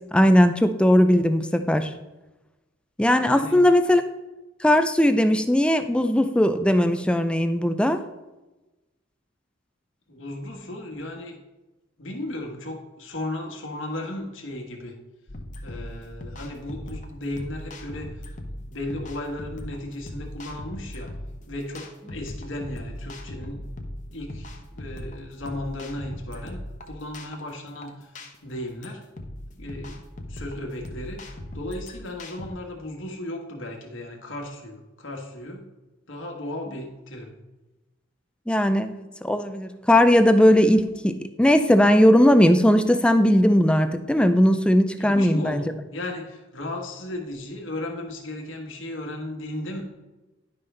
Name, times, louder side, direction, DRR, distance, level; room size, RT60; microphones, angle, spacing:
voice 1, 0.1-1.9 3.0-4.0 4.6-8.0 38.5-45.6, equal, 5° left, 9 dB, 0.3 m, -18 dB
voice 2, 3.2-3.7 10.1-11.3 12.0-14.9 15.6-18.2 18.6-21.1 21.5-23.6 24.1-28.1 28.4-29.0 29.5-30.0 30.3-31.2 31.5-35.7 36.1-37.3 45.0-49.8, left 1 dB, 75° left, 2 dB, 1.4 m, -35 dB
sound 1, 15.3-32.5, left 1 dB, 40° left, 0.8 m, -39 dB
10.5 x 5.4 x 3.3 m, 1.1 s
head